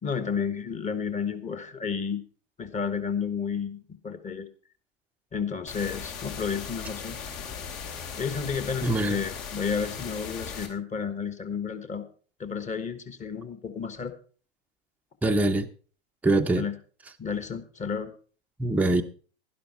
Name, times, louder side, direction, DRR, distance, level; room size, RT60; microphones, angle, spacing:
voice 1, 0.0-2.2 2.6-4.5 5.3-7.2 8.2-12.1 12.4-14.1 16.5-16.7 17.2-18.1, left 6 dB, 20° left, 1.5 m, -31 dB
sound 1, 5.7-10.7, left 6 dB, 55° left, 2.9 m, -38 dB
voice 2, 8.8-9.2 15.2-15.7 16.2-16.7 18.6-19.0, right 2 dB, 5° right, 0.8 m, -23 dB
12.0 x 11.0 x 4.5 m
hypercardioid pair, 100°, 34 cm